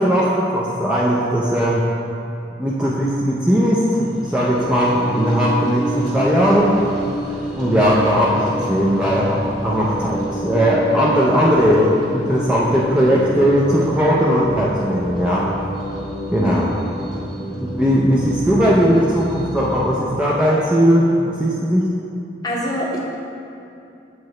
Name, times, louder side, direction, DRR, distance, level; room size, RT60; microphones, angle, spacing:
voice 1, 0.0-1.8 2.6-6.8 7.6-15.5 16.3-16.7 17.6-21.9, equal, 5° right, -7 dB, 0.4 m, -18 dB
sound 1, 3.9-19.9, equal, 20° right, 1.4 m, -29 dB
voice 2, 16.4-16.9 22.4-23.0, equal, 20° left, -3 dB, 0.7 m, -25 dB
7.3 x 4.6 x 3.1 m, 2.7 s
head